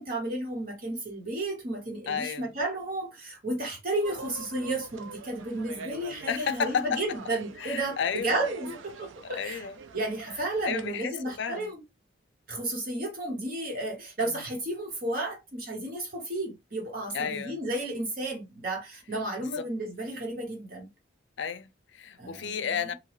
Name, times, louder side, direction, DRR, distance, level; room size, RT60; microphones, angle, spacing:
voice 1, 0.0-9.6 9.9-11.8 12.5-20.9 22.2-22.9, right 2 dB, 45° right, 1.1 m, -33 dB
voice 2, 2.1-2.5 6.3-7.0 7.6-8.4 9.2-9.8 10.6-11.7 14.2-14.5 17.1-17.6 19.5-19.7 21.4-22.9, left 7 dB, 65° left, 0.4 m, -32 dB
sound 1, 4.0-10.9, right 3 dB, 85° right, 0.4 m, -44 dB
3.0 x 2.3 x 3.0 m
head